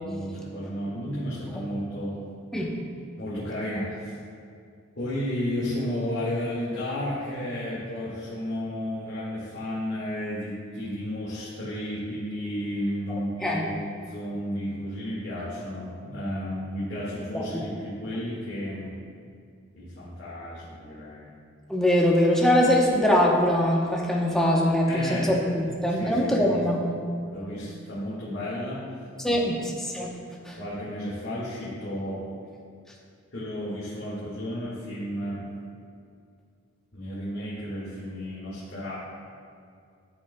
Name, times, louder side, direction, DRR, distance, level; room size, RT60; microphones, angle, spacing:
voice 1, 0.0-2.1 3.2-4.1 5.0-13.8 14.1-18.9 19.8-21.3 24.9-25.4 25.9-26.6 27.3-28.9 29.2-29.5 30.6-32.3 33.3-35.5 36.9-38.9, equal, 55° left, -9 dB, 1.7 m, -32 dB
voice 2, 17.3-17.7 21.7-26.8 29.2-30.2 30.4-30.6, left 1 dB, ahead, -3 dB, 0.8 m, -23 dB
12.0 x 6.8 x 2.2 m, 2.3 s
head